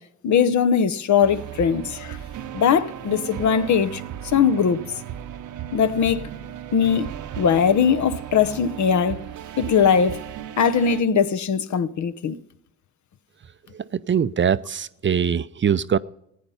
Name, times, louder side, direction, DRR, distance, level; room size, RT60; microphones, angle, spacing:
voice 1, 0.2-2.2 2.5-4.8 5.7-6.2 6.7-7.1 7.4-9.2 9.6-10.2 10.6-12.3, left 7 dB, 60° left, 0.9 m, -20 dB
sound 1, 1.2-11.0, right 11 dB, 65° right, 0.9 m, -36 dB
voice 2, 14.1-16.0, right 8 dB, 35° right, 0.5 m, -22 dB
15.5 x 9.3 x 5.6 m
supercardioid pair, 60°, 33 cm